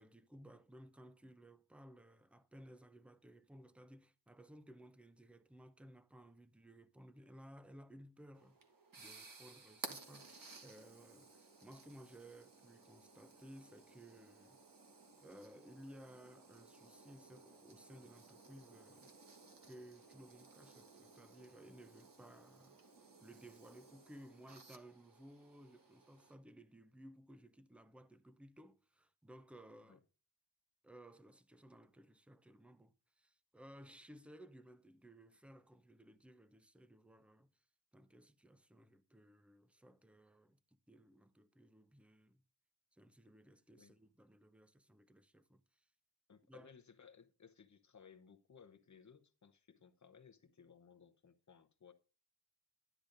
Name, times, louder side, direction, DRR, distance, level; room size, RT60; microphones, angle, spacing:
voice 1, 0.0-8.6 9.0-14.6 15.2-22.8 23.2-30.0 30.8-37.5 37.9-42.4 42.9-45.9 46.5-46.7, right 1 dB, 5° right, 0.4 m, -59 dB
sound 1, 8.4-26.3, right 3 dB, 50° right, 1.5 m, -57 dB
voice 2, 46.3-51.9, left 6 dB, 40° left, 0.8 m, -62 dB
12.0 x 9.9 x 2.6 m
wide cardioid pair, 115°, 44 cm